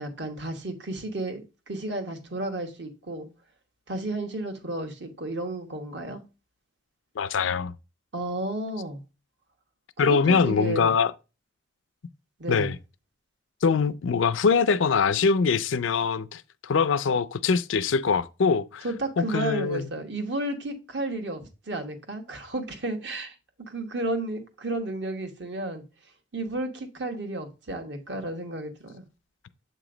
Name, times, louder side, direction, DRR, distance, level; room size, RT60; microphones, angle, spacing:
voice 1, 0.0-3.3 3.9-6.2 8.1-9.0 10.0-10.9 12.4-12.7 18.8-23.3 23.7-25.8 26.3-29.0, right 2 dB, 65° right, 1.2 m, -32 dB
voice 2, 7.2-7.7 10.0-11.1 12.5-12.8 13.6-18.8 19.2-19.9, left 5 dB, 80° left, 0.5 m, -23 dB
7.7 x 3.0 x 4.9 m
head